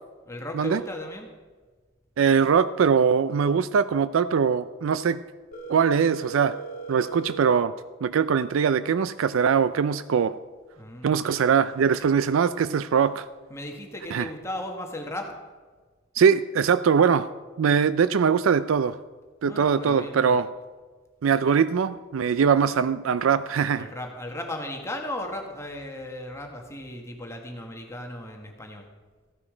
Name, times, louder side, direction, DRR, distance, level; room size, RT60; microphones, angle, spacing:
voice 1, 0.3-1.3 10.8-11.3 13.5-15.3 19.4-20.4 23.7-28.9, left 1 dB, 15° left, 2 dB, 1.4 m, -36 dB
voice 2, 2.2-5.2 5.7-6.6 6.9-7.7 8.0-10.4 11.0-13.3 14.1-14.3 16.2-17.3 17.6-19.0 19.4-20.5 21.2-23.9, right 6 dB, 75° right, 15 dB, 0.4 m, -22 dB
Telephone, 5.5-7.5, right 5 dB, 40° left, 2.4 m, -38 dB
14.5 x 9.7 x 4.9 m, 1.4 s
head